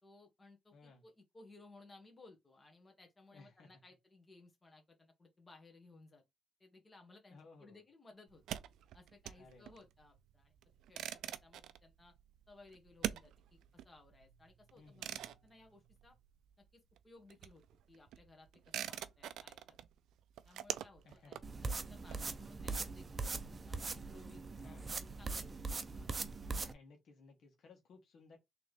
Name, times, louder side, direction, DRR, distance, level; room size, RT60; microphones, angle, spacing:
voice 1, 0.0-6.2 6.6-8.4 8.9-10.5 10.9-12.1 12.5-16.2 16.6-19.8 20.4-24.8 25.2-25.6 25.9-26.2, left 2 dB, 25° left, 1.5 m, -61 dB
voice 2, 0.7-1.0 3.3-3.7 7.3-7.8 9.4-9.8 14.7-15.4 21.0-21.4 24.5-25.1 26.5-28.4, left 3 dB, 65° left, 1.5 m, -60 dB
sound 1, 8.3-16.6 16.9-22.7, right 11 dB, 80° right, 0.3 m, -46 dB
sound 2, 21.4-26.7, right 3 dB, 35° right, 0.6 m, -41 dB
3.7 x 3.2 x 3.4 m
cardioid pair, 90°, 0 cm